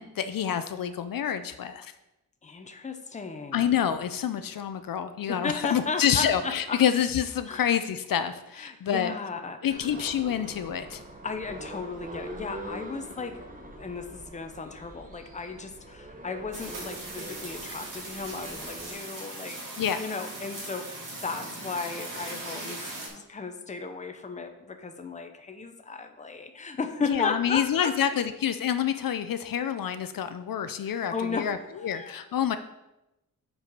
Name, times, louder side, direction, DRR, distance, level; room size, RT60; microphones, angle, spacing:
voice 1, 0.0-1.9 3.5-9.1 9.6-11.0 19.8-20.0 27.1-31.6 31.8-32.6, left 9 dB, 65° left, 10 dB, 0.5 m, -27 dB
voice 2, 2.4-3.7 5.3-6.8 7.5-7.6 8.6-9.9 11.2-19.6 20.0-27.9 30.8-32.1, left 4 dB, 20° left, 6 dB, 0.6 m, -35 dB
sound 1, 9.7-18.9, right 1 dB, 25° right, 0.9 m, -43 dB
sound 2, 16.5-23.1, right 2 dB, 60° right, 2.1 m, -39 dB
7.5 x 4.7 x 5.3 m, 0.94 s
wide cardioid pair, 160°, 36 cm